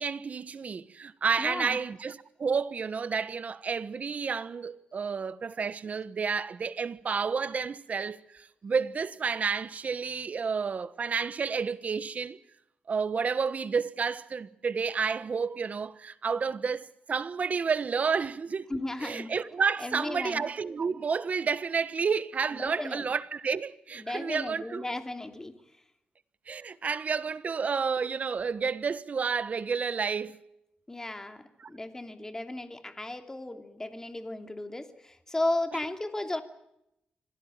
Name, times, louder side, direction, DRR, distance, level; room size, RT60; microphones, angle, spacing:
voice 1, 0.0-12.4 12.9-18.7 19.0-24.8 26.5-30.4 31.6-31.7, right 5 dB, 50° right, 1.3 m, -30 dB
voice 2, 1.4-1.8 18.7-19.3 19.8-20.4 22.5-23.1 24.0-25.6 30.9-36.4, left 2 dB, 15° left, 2.7 m, -35 dB
26.0 x 17.5 x 9.0 m
cardioid pair, 95°, 3 cm